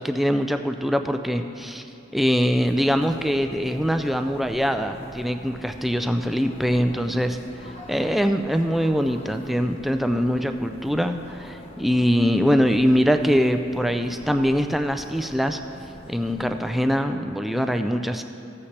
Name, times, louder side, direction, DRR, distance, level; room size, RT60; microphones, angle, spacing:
voice 1, 0.0-1.8 2.1-15.6 16.1-18.2, equal, ahead, 6 dB, 0.3 m, -23 dB
sound 1, 2.6-16.9, equal, 30° left, 0.9 m, -44 dB
15.0 x 8.4 x 3.3 m, 2.7 s
head